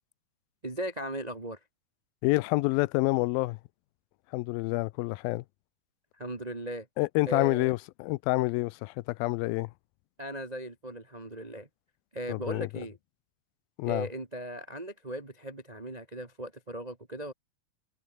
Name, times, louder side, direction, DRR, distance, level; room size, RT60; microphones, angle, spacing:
voice 1, 0.6-1.6 6.2-6.9 7.3-7.7 10.2-11.7 12.1-13.0 13.9-17.3, right 1 dB, 40° right, 0.5 m, -38 dB
voice 2, 2.2-3.6 4.3-5.4 7.0-9.7 12.3-12.9 13.8-14.1, left 21 dB, 90° left, 2.4 m, -28 dB
omnidirectional pair, 4.1 m